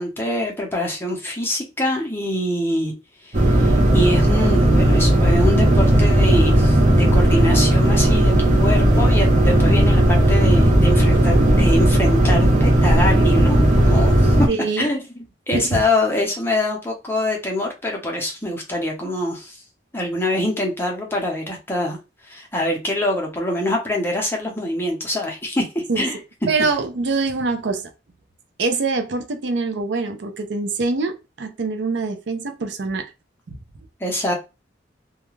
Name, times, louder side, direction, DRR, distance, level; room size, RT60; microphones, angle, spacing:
voice 1, 0.0-2.9 3.2-14.4 14.8-15.0 15.5-19.6 19.9-22.0 22.2-26.2 34.0-34.3, left 1 dB, 15° left, 0.6 m, -24 dB
sound 1, 3.3-14.5, right 1 dB, 40° right, 0.8 m, -15 dB
voice 2, 14.5-14.9 15.5-15.6 25.9-26.0 26.5-27.8 28.6-33.1, right 3 dB, 70° right, 0.5 m, -24 dB
2.3 x 2.2 x 3.0 m
head